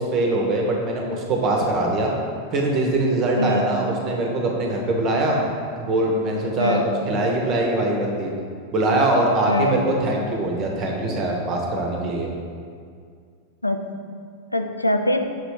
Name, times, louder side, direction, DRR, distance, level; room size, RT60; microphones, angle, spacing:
voice 1, 0.0-2.1 2.5-5.4 5.8-6.8 7.1-8.3 8.7-12.3, right 2 dB, 35° right, 0 dB, 1.0 m, -22 dB
voice 2, 3.4-3.7 6.6-6.9 9.5-9.8 13.6-13.9 14.5-15.4, left 1 dB, 85° left, 6 dB, 0.3 m, -23 dB
6.3 x 3.1 x 4.8 m, 2.2 s
figure-of-eight pair, 90°, 0 cm